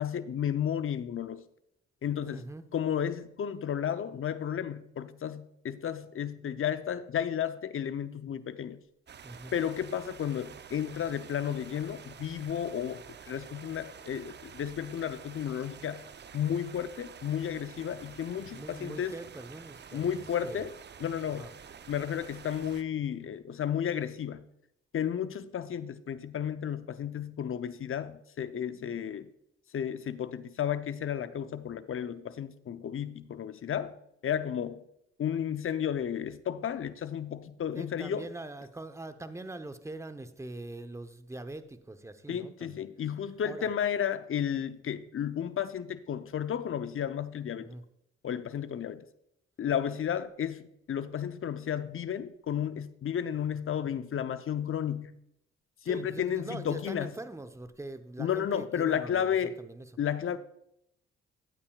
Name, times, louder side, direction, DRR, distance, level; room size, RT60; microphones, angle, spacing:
voice 1, 0.0-1.4 2.0-2.5 2.7-8.8 9.5-16.1 16.3-19.1 19.9-20.7 21.0-21.5 21.9-24.5 24.9-29.3 29.7-33.9 34.2-34.8 35.2-38.3 42.3-47.7 48.2-49.0 49.6-55.2 55.8-57.1 58.2-59.6 60.0-60.4, left 9 dB, 45° left, 0.7 m, -33 dB
voice 2, 2.2-2.7 9.2-9.5 18.4-20.6 21.3-21.5 37.7-42.9 43.4-43.7 47.6-47.8 55.8-59.9, right 2 dB, 10° right, 0.9 m, -43 dB
sound 1, 9.1-22.8, right 7 dB, 35° right, 0.6 m, -49 dB
13.0 x 8.6 x 2.4 m
hypercardioid pair, 40°, 30 cm